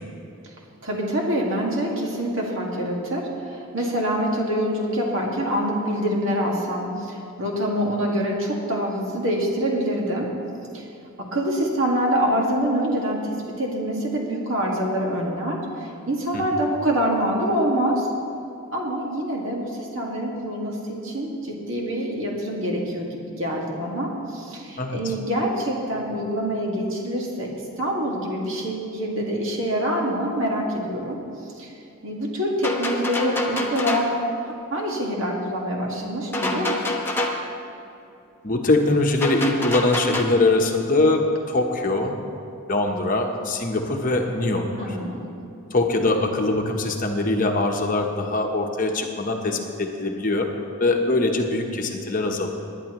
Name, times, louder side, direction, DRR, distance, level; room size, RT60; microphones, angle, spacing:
voice 1, 0.8-10.3 10.7-10.8 11.2-18.1 18.7-27.5 27.8-31.2 31.6-31.7 32.0-34.1 34.7-36.9 44.7-45.3, equal, 65° right, -2 dB, 2.0 m, -25 dB
voice 2, 24.8-25.1 38.4-41.2 41.5-42.2 42.7-45.0 45.7-50.5 50.8-52.5, left 2 dB, 40° left, 2 dB, 1.0 m, -22 dB
sound 1, 32.6-34.2 36.3-37.5 39.2-40.2, left 2 dB, 10° left, 0.9 m, -26 dB
20.5 x 9.9 x 3.1 m, 2.7 s
head